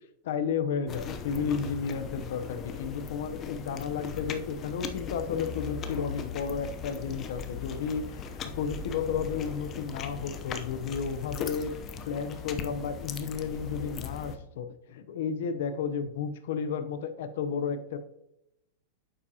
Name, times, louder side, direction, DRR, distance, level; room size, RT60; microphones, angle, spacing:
voice 1, 0.2-11.7 12.1-18.0, left 6 dB, 70° left, 9 dB, 0.7 m, -33 dB
sound 1, 0.9-14.4, left 6 dB, 25° left, 0.7 m, -38 dB
9.6 x 7.5 x 2.8 m, 0.83 s
supercardioid pair, 155°, 0 cm